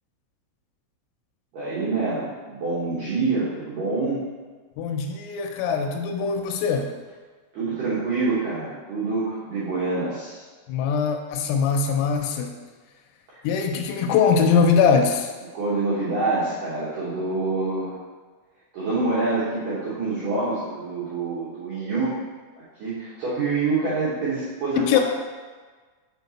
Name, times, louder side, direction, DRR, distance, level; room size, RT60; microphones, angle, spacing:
voice 1, 1.5-4.2 7.5-10.4 15.5-17.9 18.7-22.1 22.8-25.0, right 3 dB, 75° right, -10 dB, 2.0 m, -26 dB
voice 2, 4.8-6.9 10.7-12.5 13.4-15.3 24.8-25.0, left 6 dB, 85° left, 5 dB, 3.2 m, -22 dB
6.6 x 4.5 x 4.1 m, 1.4 s
omnidirectional pair, 5.8 m